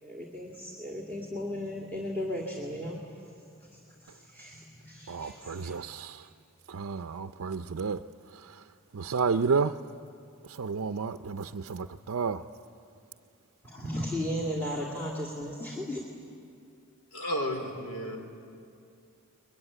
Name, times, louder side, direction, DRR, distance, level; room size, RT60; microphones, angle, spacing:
voice 1, 0.0-3.0 3.6-5.8 13.6-16.0, equal, 10° left, 2.5 m, -36 dB
voice 2, 5.1-6.2 6.7-8.0 8.9-9.7 10.6-12.4, right 5 dB, 75° right, 0.5 m, -31 dB
voice 3, 17.1-18.2, equal, 80° left, 4.0 m, -32 dB
23.0 x 22.0 x 10.0 m
head